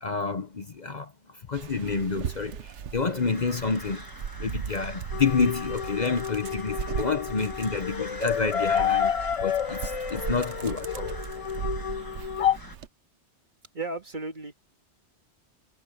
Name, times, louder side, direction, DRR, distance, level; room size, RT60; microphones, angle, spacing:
voice 1, 0.0-1.1 1.5-4.0 4.4-9.1 9.4-11.1, left 4 dB, 40° left, 0.9 m, -29 dB
Dog, 1.5-12.9, right 8 dB, 85° right, 1.2 m, -38 dB
sound 1, 3.1-12.8, left 2 dB, 20° left, 1.5 m, -44 dB
sound 2, 5.1-12.6, left 8 dB, 65° left, 0.3 m, -30 dB
voice 2, 13.7-14.5, right 3 dB, 45° right, 1.8 m, -34 dB
omnidirectional pair, 1.2 m